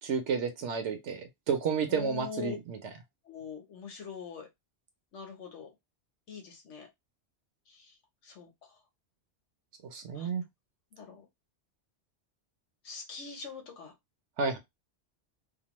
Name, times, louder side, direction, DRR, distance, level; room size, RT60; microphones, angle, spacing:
voice 1, 0.0-2.8 9.9-10.4 14.4-14.6, right 6 dB, 80° right, 1.0 m, -31 dB
voice 2, 1.9-2.6 3.3-4.5 5.1-5.7 6.3-6.9 7.7-7.9 8.2-8.5 10.1-10.3 10.9-11.3 12.8-13.9, left 5 dB, 85° left, 1.2 m, -42 dB
2.9 x 2.1 x 3.0 m
omnidirectional pair, 1.2 m